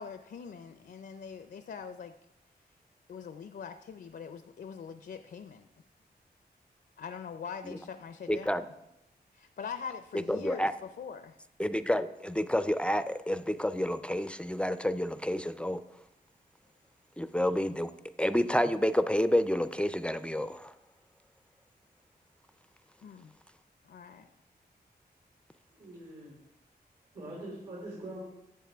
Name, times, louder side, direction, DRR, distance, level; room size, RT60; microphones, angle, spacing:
voice 1, 0.0-2.1 3.1-5.7 7.0-8.6 9.3-11.4 23.0-23.3 23.8-24.3, left 6 dB, 70° left, 8 dB, 0.5 m, -43 dB
voice 2, 8.3-8.6 10.3-10.7 11.6-15.8 17.2-17.9 18.2-20.7, equal, 5° left, 12 dB, 0.4 m, -29 dB
voice 3, 25.7-26.3 27.1-28.2, right 1 dB, 75° right, -5 dB, 3.8 m, -43 dB
12.0 x 7.9 x 3.5 m, 0.88 s
wide cardioid pair, 110°, 17 cm